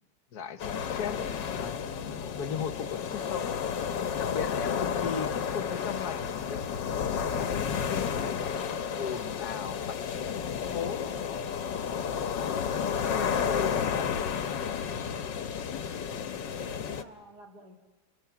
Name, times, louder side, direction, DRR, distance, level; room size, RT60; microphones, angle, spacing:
voice 1, 0.3-3.8 4.2-6.6 6.9-8.4 9.0-11.1 12.8-14.2, left 7 dB, 65° left, 13 dB, 1.5 m, -38 dB
sound 1, 0.6-17.0, left 7 dB, 85° left, 1.6 m, -32 dB
sound 2, 4.1-10.1, right 1 dB, 85° right, 6.9 m, -54 dB
voice 2, 14.9-15.6 16.4-17.8, right 1 dB, 65° right, 3 dB, 2.9 m, -53 dB
29.5 x 22.0 x 5.9 m, 1.2 s
omnidirectional pair, 1.9 m